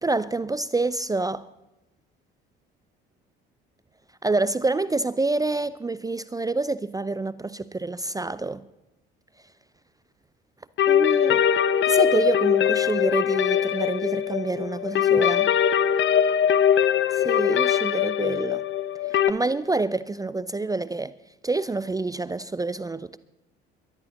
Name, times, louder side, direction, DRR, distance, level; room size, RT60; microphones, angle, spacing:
voice 1, 0.0-1.5 4.2-8.7 10.9-11.5 11.8-15.5 17.1-18.6 19.3-21.1 21.4-23.2, right 3 dB, 10° right, 0.4 m, -27 dB
sound 1, 10.8-19.3, left 9 dB, 40° left, 0.8 m, -21 dB
23.0 x 11.0 x 4.2 m
figure-of-eight pair, 55°, 29 cm